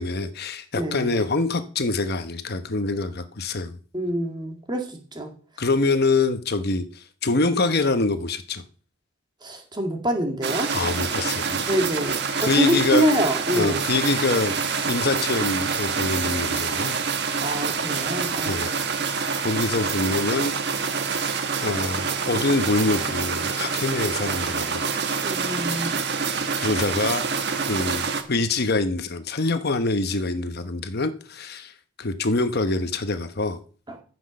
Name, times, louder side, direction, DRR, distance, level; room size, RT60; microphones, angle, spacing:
voice 1, 0.0-3.8 5.6-8.6 10.7-11.6 12.4-13.1 13.5-16.9 18.5-18.7 19.4-20.5 20.8-20.9 21.6-24.8 26.6-27.2 27.7-31.7 32.0-33.6, left 3 dB, 45° left, 1.0 m, -25 dB
voice 2, 0.7-1.1 3.9-5.3 9.4-10.7 11.7-13.8 17.4-18.7 19.0-19.1 25.2-25.9 33.9-34.0, right 1 dB, 20° right, 2.2 m, -26 dB
sound 1, 10.4-28.2, right 5 dB, 50° right, 1.4 m, -26 dB
15.0 x 6.2 x 6.4 m
head